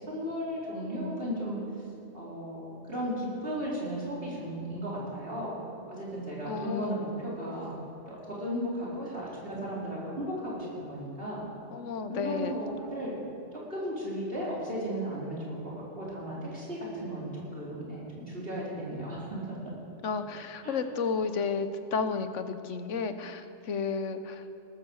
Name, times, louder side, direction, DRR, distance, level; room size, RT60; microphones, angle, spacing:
voice 1, 0.0-1.6 2.1-5.5 5.9-7.7 8.0-11.4 12.1-13.2 13.7-19.6 20.6-20.8, equal, 50° right, -6 dB, 4.3 m, -35 dB
voice 2, 6.4-7.0 11.7-12.6 20.0-24.5, left 5 dB, 85° left, 10 dB, 1.3 m, -32 dB
19.0 x 10.5 x 7.1 m, 2.9 s
omnidirectional pair, 1.2 m